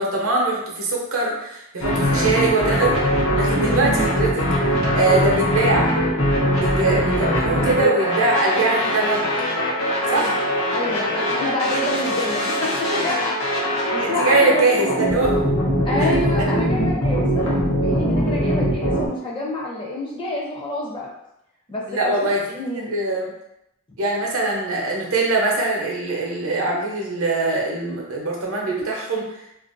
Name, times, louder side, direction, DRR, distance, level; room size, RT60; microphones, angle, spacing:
voice 1, 0.0-3.0 3.4-5.9 6.5-9.3 10.1-10.4 14.0-15.4 16.0-16.1 21.9-22.4 22.7-23.3 24.0-29.2, right 2 dB, 75° right, -2 dB, 0.6 m, -22 dB
sound 1, 1.8-19.1, equal, 60° left, 0.7 m, -21 dB
voice 2, 10.7-13.3 13.9-14.6 15.8-21.1 21.7-21.8 22.2-22.3 22.5-22.9, left 2 dB, 20° left, -4 dB, 0.5 m, -28 dB
2.4 x 2.2 x 2.5 m, 0.82 s
head